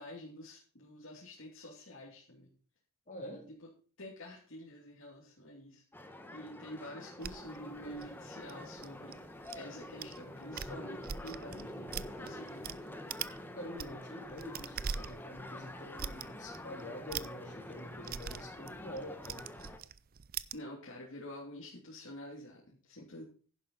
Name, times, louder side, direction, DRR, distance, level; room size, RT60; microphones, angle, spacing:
voice 1, 0.0-2.5 3.6-3.7 4.0-5.8 6.3-9.2 9.5-12.7 20.5-23.2, left 1 dB, 65° left, -3 dB, 2.9 m, -48 dB
voice 2, 3.1-3.5 13.5-19.5, left 1 dB, 35° left, -1 dB, 3.4 m, -46 dB
sound 1, 5.9-19.8, left 1 dB, 10° left, 1.3 m, -47 dB
sound 2, 7.2-9.6 10.0-10.2 10.4-12.8 13.1-13.4 13.7-20.6, right 7 dB, 45° right, 0.5 m, -42 dB
11.0 x 10.0 x 4.1 m, 0.39 s
head